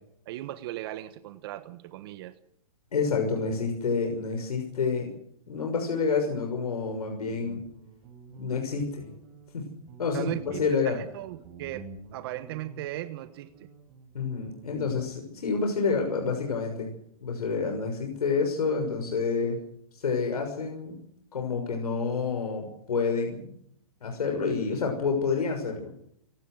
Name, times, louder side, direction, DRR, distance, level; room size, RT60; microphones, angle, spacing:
voice 1, 0.3-2.3 10.1-11.9 12.1-13.7, right 15 dB, 40° right, 11 dB, 1.3 m, -37 dB
voice 2, 2.9-5.1 5.5-7.6 8.4-9.1 9.5-9.7 10.0-11.0 14.1-16.9 17.2-19.6 19.9-21.0 21.3-23.5 24.0-25.9, left 5 dB, 85° left, 3 dB, 6.3 m, -28 dB
Guitar, 6.8-15.3, right 4 dB, 20° right, 7.6 m, -49 dB
26.0 x 18.0 x 6.4 m, 0.72 s
hypercardioid pair, 150°, 19 cm